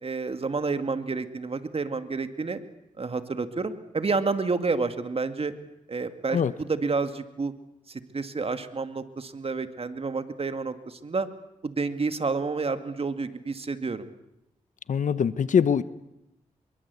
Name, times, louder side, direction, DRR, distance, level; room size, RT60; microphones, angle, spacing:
voice 1, 0.0-2.6 3.0-5.5 5.9-6.4 6.7-7.5 7.9-11.3 11.6-14.1, right 4 dB, 45° right, 2.3 m, -29 dB
voice 2, 14.9-15.8, left 7 dB, 70° left, 1.1 m, -22 dB
25.0 x 23.0 x 8.4 m
cardioid pair, 55°, 13 cm